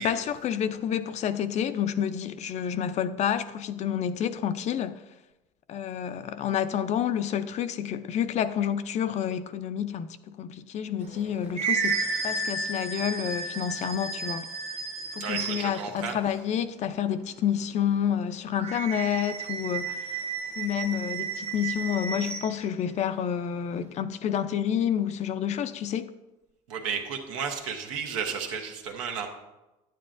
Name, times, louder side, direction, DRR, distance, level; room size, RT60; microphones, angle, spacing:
voice 1, 0.0-5.0 5.7-14.5 15.1-20.2 20.6-26.1, left 9 dB, 45° left, 0.5 m, -29 dB
sound 1, 11.1-15.8 18.5-22.5, right 4 dB, 40° right, 1.2 m, -32 dB
voice 2, 15.2-16.1 26.7-29.3, right 6 dB, 85° right, 1.2 m, -33 dB
9.1 x 9.0 x 2.6 m
supercardioid pair, 90°, 16 cm